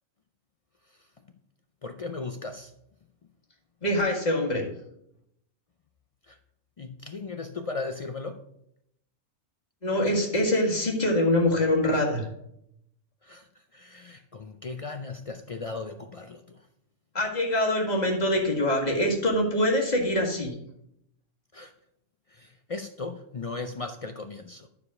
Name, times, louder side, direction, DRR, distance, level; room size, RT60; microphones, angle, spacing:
voice 1, 1.8-2.7 6.3-6.4 6.8-8.5 13.2-13.5 13.7-16.6 21.5-21.7 22.3-24.7, left 3 dB, 55° left, 7 dB, 0.4 m, -37 dB
voice 2, 3.8-4.6 9.8-12.3 17.2-20.6, left 1 dB, 35° left, 0 dB, 1.8 m, -24 dB
11.5 x 4.8 x 4.8 m, 0.78 s
omnidirectional pair, 1.2 m